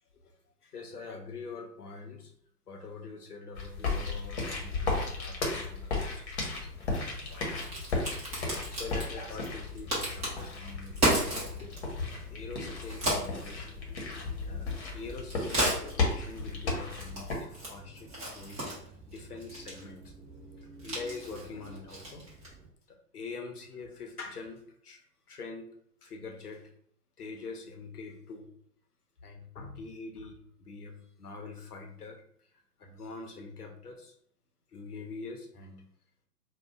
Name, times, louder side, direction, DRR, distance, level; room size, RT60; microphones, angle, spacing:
voice 1, 0.1-2.3 2.7-11.8 12.3-13.8 14.4-14.7 14.9-20.1 20.6-22.3 22.9-25.7 26.0-26.7 27.2-28.5 29.2-34.1 34.7-35.8, left 4 dB, 65° left, 4 dB, 0.8 m, -45 dB
sound 1, 3.5-17.3, left 3 dB, 45° left, 1.1 m, -35 dB
Crack, 6.6-22.7, right 1 dB, 15° right, 1.0 m, -36 dB
5.1 x 2.4 x 2.3 m, 0.66 s
figure-of-eight pair, 120°, 48 cm